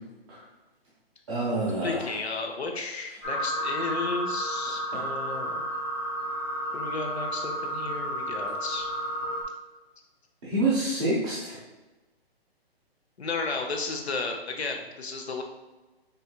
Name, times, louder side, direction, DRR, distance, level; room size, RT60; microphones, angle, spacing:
voice 1, 1.3-2.1 10.4-11.6, right 2 dB, 30° right, -10 dB, 1.1 m, -27 dB
voice 2, 1.8-5.6 6.7-8.9 13.2-15.4, left 3 dB, 85° left, 2 dB, 0.9 m, -33 dB
sound 1, 3.2-9.4, equal, 15° left, 0.6 m, -32 dB
5.6 x 2.7 x 2.4 m, 1.2 s
hypercardioid pair, 155°, 31 cm